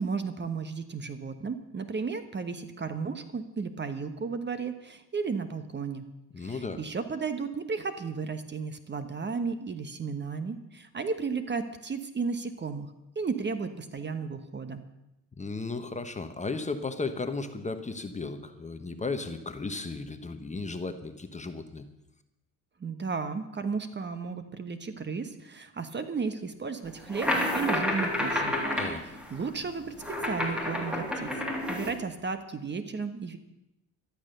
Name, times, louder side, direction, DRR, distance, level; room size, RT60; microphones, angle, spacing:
voice 1, 0.0-6.1 6.4-12.9 13.1-14.8 22.8-28.5 29.3-30.0 30.2-31.3 31.7-33.4, right 5 dB, 25° right, 10 dB, 1.2 m, -34 dB
voice 2, 6.3-6.8 15.4-21.8 28.8-29.0, left 3 dB, 20° left, 8 dB, 1.2 m, -35 dB
sound 1, 27.0-31.9, left 1 dB, 5° right, 3.2 m, -30 dB
13.0 x 12.5 x 6.7 m, 0.88 s
cardioid pair, 105°, 39 cm